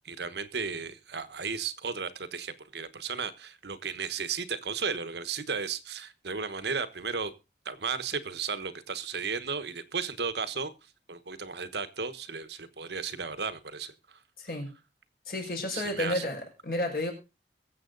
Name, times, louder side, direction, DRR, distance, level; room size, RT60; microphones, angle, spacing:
voice 1, 0.0-7.3 7.6-10.7 11.1-14.2 15.7-16.2, right 5 dB, 75° right, 12 dB, 1.2 m, -34 dB
voice 2, 14.4-14.7 15.3-17.1, left 1 dB, 55° left, 0 dB, 5.5 m, -31 dB
22.5 x 7.7 x 3.9 m, 0.29 s
head